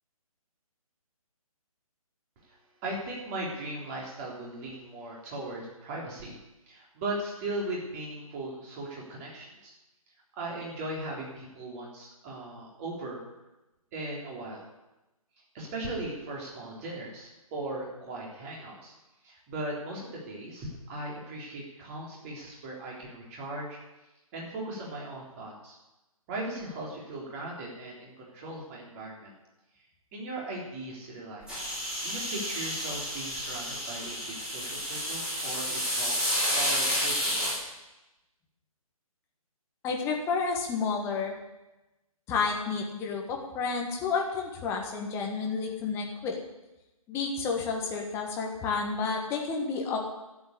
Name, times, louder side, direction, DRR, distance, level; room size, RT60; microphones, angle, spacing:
voice 1, 2.8-6.4 6.7-9.7 10.3-13.2 13.9-14.6 15.5-18.9 19.2-23.8 24.3-25.8 26.3-29.3 30.1-31.5 32.0-37.5, right 2 dB, 25° right, -3 dB, 3.8 m, -38 dB
sound 1, 31.5-37.6, equal, 5° right, 3.7 m, -30 dB
voice 2, 39.8-41.3 42.3-46.4 47.1-50.0, left 5 dB, 15° left, 1 dB, 1.6 m, -30 dB
12.0 x 8.0 x 8.5 m, 1.0 s
figure-of-eight pair, 145°, 19 cm